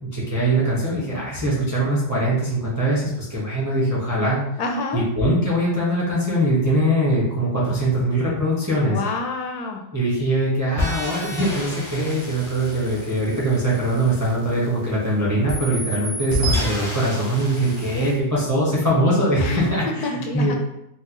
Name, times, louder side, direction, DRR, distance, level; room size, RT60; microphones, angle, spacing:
voice 1, 0.0-4.4 4.9-9.0 9.9-20.5, right 1 dB, 15° right, -7 dB, 0.8 m, -22 dB
voice 2, 4.6-5.1 8.8-9.9 19.4-20.6, left 3 dB, 75° left, 3 dB, 1.1 m, -28 dB
sound 1, 10.8-15.1 15.5-18.2, left 1 dB, 25° left, 0.6 m, -30 dB
4.3 x 2.1 x 2.9 m, 0.79 s
omnidirectional pair, 1.7 m